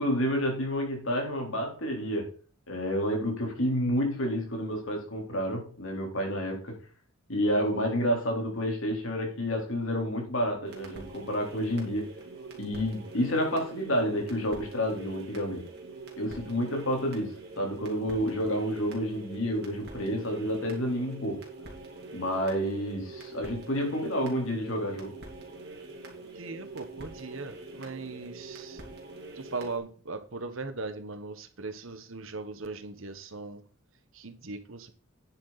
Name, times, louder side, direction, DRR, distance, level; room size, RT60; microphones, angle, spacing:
voice 1, 0.0-2.3 2.7-6.8 7.3-12.1 12.6-15.6 16.2-21.4 22.1-25.1, equal, 65° left, 3.9 m, -29 dB
sound 1, 10.6-29.8, right 3 dB, 50° right, 3.2 m, -45 dB
voice 2, 26.3-28.8 29.3-33.6 34.1-34.9, right 3 dB, 65° right, 1.3 m, -39 dB
9.8 x 8.0 x 4.2 m
head